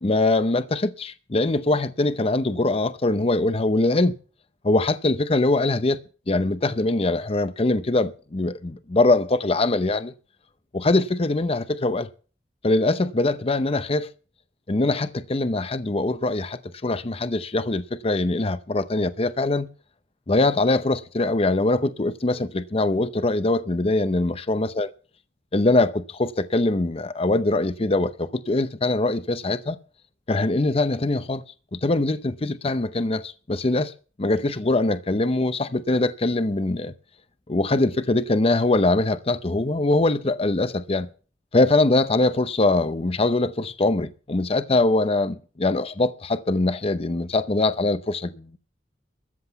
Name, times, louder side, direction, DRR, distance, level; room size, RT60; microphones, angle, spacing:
voice 1, 0.0-4.2 4.6-6.0 6.3-10.1 10.7-12.1 12.6-14.1 14.7-19.7 20.3-24.9 25.5-29.8 30.3-31.4 31.7-33.9 34.2-36.9 37.5-41.1 41.5-48.6, left 2 dB, 35° left, 0.7 m, -22 dB
13.5 x 7.8 x 7.0 m
head